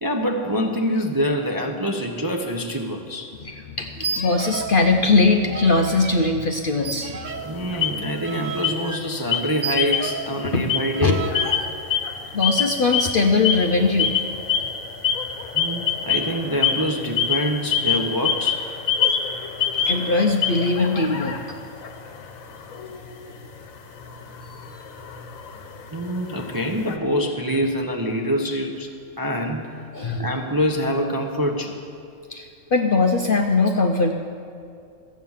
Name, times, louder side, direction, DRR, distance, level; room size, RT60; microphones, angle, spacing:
voice 1, 0.0-3.4 7.4-11.3 15.5-18.7 25.9-29.8 30.2-31.8, equal, 20° right, 2 dB, 0.6 m, -25 dB
voice 2, 3.4-7.4 10.4-10.6 11.0-11.1 12.3-14.1 19.9-21.6 29.9-30.3 32.3-34.1, left 3 dB, 50° left, 3 dB, 0.7 m, -21 dB
sound 1, 3.9-4.8 5.1-6.2 6.8-10.4 10.9-11.7, right 5 dB, 85° right, 0.4 m, -32 dB
sound 2, 7.3-8.3 8.6-9.0 9.3-10.3 10.6-27.0, left 7 dB, 65° left, 1.3 m, -26 dB
14.0 x 8.3 x 7.2 m, 2.4 s
omnidirectional pair, 1.5 m